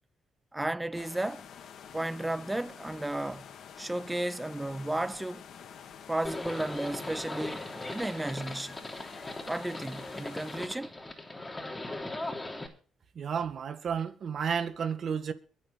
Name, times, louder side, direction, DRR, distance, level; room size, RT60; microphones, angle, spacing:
voice 1, 0.5-1.4 1.9-3.4 3.8-5.4 6.1-8.8 9.5-10.9, right 1 dB, 10° right, 0.6 m, -33 dB
sound 1, 0.9-10.7, left 8 dB, 70° left, 2.2 m, -48 dB
Livestock farm animals working animals, 6.2-12.7, left 2 dB, 15° left, 3.2 m, -39 dB
voice 2, 13.2-15.3, right 7 dB, 55° right, 1.9 m, -32 dB
23.0 x 7.9 x 4.2 m
cardioid pair, 90°, 0 cm